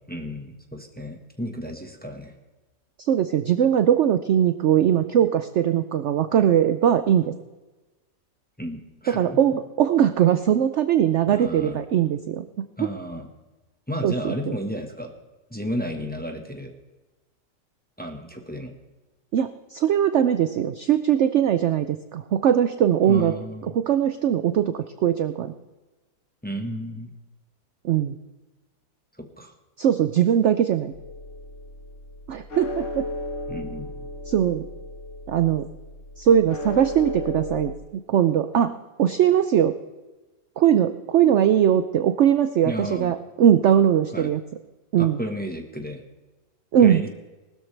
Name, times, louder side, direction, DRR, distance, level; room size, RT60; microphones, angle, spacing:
voice 1, 0.1-2.3 8.6-9.4 11.3-11.8 12.8-13.3 13.9-15.1 15.5-16.7 18.0-18.7 23.1-23.8 26.4-27.1 29.2-29.5 33.5-34.0 42.6-43.2 44.1-44.3 45.0-46.0 46.8-47.1, equal, 5° left, 3 dB, 1.1 m, -33 dB
voice 2, 3.0-7.3 9.1-12.4 14.0-14.3 19.3-23.3 23.7-25.5 27.8-28.2 29.8-30.9 32.3-33.1 34.3-34.6 35.3-35.7 36.2-37.7 38.1-38.7 39.0-39.7 40.6-44.4 44.9-45.2 46.7-47.0, right 9 dB, 65° right, 10 dB, 0.7 m, -20 dB
sound 1, 30.9-37.8, left 2 dB, 50° left, 1.8 m, -35 dB
19.5 x 13.0 x 3.3 m, 1.2 s
omnidirectional pair, 1.8 m